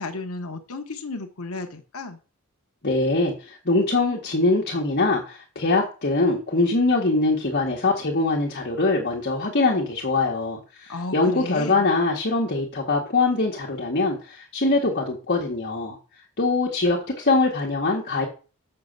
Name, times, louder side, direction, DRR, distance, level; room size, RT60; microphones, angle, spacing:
voice 1, 0.0-2.2 10.9-11.9, left 3 dB, 75° left, 5 dB, 1.1 m, -33 dB
voice 2, 2.8-16.0 16.4-18.3, left 3 dB, 50° left, -2 dB, 1.7 m, -23 dB
6.8 x 6.7 x 6.8 m, 0.36 s
head